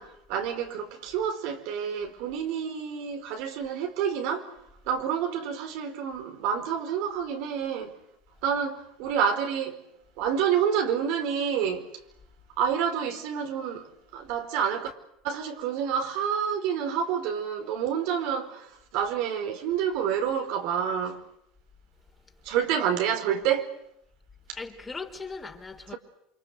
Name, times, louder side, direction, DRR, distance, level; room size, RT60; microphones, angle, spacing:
voice 1, 0.0-4.5 4.8-7.9 8.4-9.8 10.2-11.9 12.6-14.9 15.2-21.2 22.4-23.7 24.5-24.6, right 8 dB, 70° right, 4.6 m, -28 dB
voice 2, 24.6-26.0, left 4 dB, 15° left, 3.6 m, -39 dB
29.0 x 24.5 x 8.0 m
supercardioid pair, 120°, 0 cm